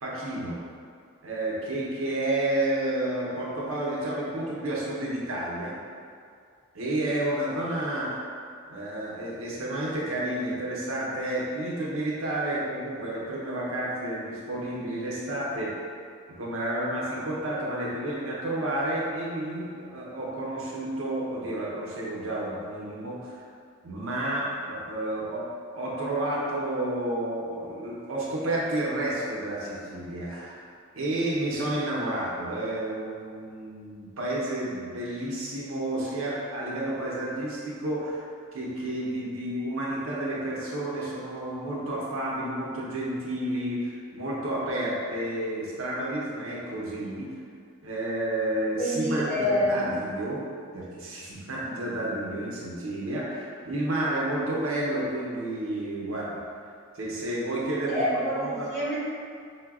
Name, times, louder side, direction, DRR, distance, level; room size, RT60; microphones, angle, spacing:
voice 1, 0.0-0.6 1.2-5.7 6.7-8.3 8.7-15.8 16.4-23.4 23.8-25.4 25.8-30.6 30.9-38.3 38.5-47.3 47.8-50.4 50.7-56.4 56.9-58.7, right 1 dB, 70° right, -5 dB, 0.6 m, -31 dB
voice 2, 48.8-50.1 57.9-59.0, equal, 5° left, -12 dB, 0.9 m, -27 dB
4.6 x 2.2 x 2.3 m, 2.2 s
head